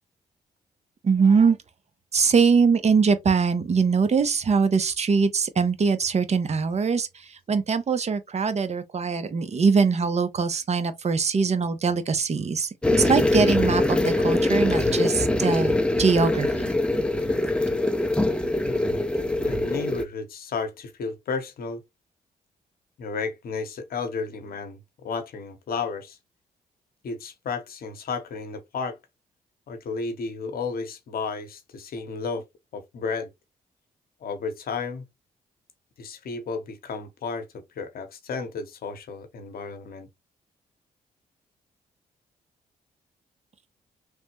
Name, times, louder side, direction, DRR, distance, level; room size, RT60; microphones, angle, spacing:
voice 1, 1.0-1.6 2.1-12.7 13.0-16.7, right 5 dB, 40° right, 0.7 m, -22 dB
sound 1, 12.8-20.0, left 1 dB, 5° left, 0.5 m, -23 dB
voice 2, 18.6-19.0 19.4-21.8 23.0-26.2 27.0-29.0 29.7-32.4 32.7-33.3 34.2-35.0 36.0-40.1, left 4 dB, 65° left, 0.8 m, -33 dB
3.3 x 2.1 x 3.0 m
supercardioid pair, 55°, 17 cm